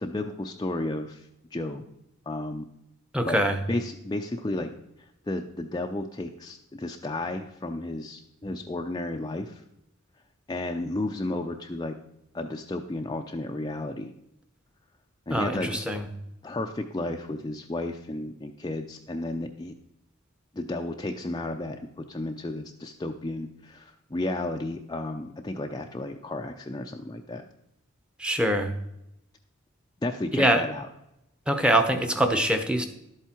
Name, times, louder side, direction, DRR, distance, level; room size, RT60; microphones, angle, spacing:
voice 1, 0.0-1.8 2.3-2.7 3.3-3.4 3.7-4.7 5.3-9.6 10.5-11.9 12.3-14.1 15.3-15.9 16.4-19.7 20.5-27.4 30.0-30.9, left 2 dB, 20° left, 3 dB, 0.5 m, -33 dB
voice 2, 3.1-3.6 15.3-16.0 28.2-28.7 30.3-30.6 31.5-32.9, right 1 dB, 5° right, 8 dB, 0.8 m, -23 dB
11.5 x 8.2 x 4.4 m, 0.84 s
head